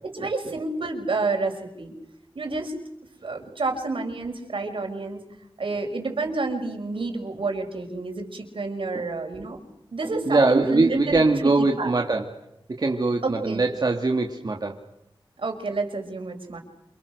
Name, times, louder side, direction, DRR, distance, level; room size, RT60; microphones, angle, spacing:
voice 1, 0.0-1.9 2.3-2.7 3.2-5.2 5.6-9.6 9.9-11.9 13.2-13.7 15.4-16.6, right 3 dB, 80° right, 4 dB, 5.7 m, -29 dB
voice 2, 10.3-12.3 12.7-14.8, right 3 dB, 50° right, 2 dB, 2.2 m, -22 dB
28.5 x 28.5 x 6.7 m, 0.84 s
wide cardioid pair, 95°, 9 cm